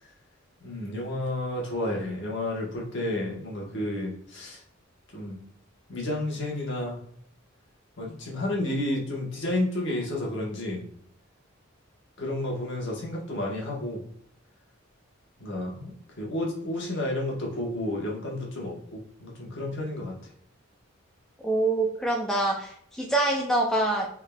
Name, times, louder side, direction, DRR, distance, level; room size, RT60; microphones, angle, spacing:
voice 1, 0.6-4.6 5.1-5.4 5.9-7.0 8.0-10.8 12.2-14.0 15.4-15.9 16.2-20.1, left 1 dB, 55° left, -2 dB, 1.1 m, -31 dB
voice 2, 21.4-24.1, right 2 dB, 5° left, -1 dB, 0.4 m, -25 dB
3.6 x 3.4 x 2.3 m, 0.66 s
head